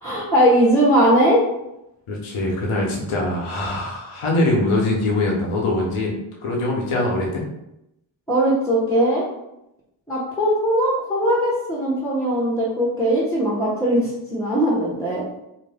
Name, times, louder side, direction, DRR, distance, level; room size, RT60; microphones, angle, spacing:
voice 1, 0.0-1.4 8.3-9.2 10.1-15.2, equal, 5° left, -6 dB, 1.1 m, -19 dB
voice 2, 2.1-6.1 6.4-7.4, left 2 dB, 75° left, -2 dB, 0.9 m, -22 dB
2.6 x 2.1 x 3.4 m, 0.85 s
supercardioid pair, 45°, 50 cm